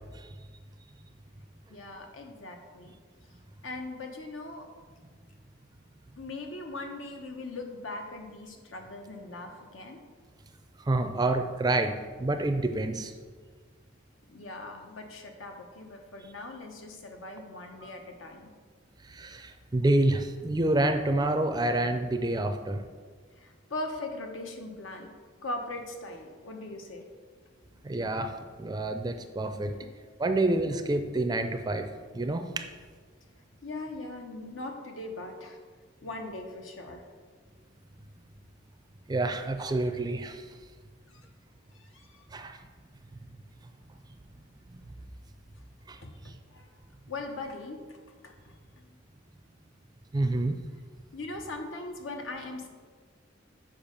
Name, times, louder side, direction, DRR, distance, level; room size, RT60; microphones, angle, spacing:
voice 1, 1.7-2.9 3.6-4.7 6.2-10.0 14.3-18.5 23.4-25.1 25.4-27.1 29.7-29.9 33.6-35.6 36.0-37.1 41.8-42.2 46.0-46.7 47.1-48.0 48.2-49.0 51.1-52.7, left 2 dB, 80° left, 3 dB, 1.1 m, -40 dB
voice 2, 10.9-13.1 17.8-17.9 19.1-22.8 27.8-28.3 28.6-29.8 30.2-32.6 39.1-40.4 42.3-42.6 44.7-44.8 45.9-46.0 50.1-50.6, right 2 dB, 20° right, 7 dB, 0.4 m, -28 dB
7.1 x 5.2 x 5.2 m, 1.6 s
head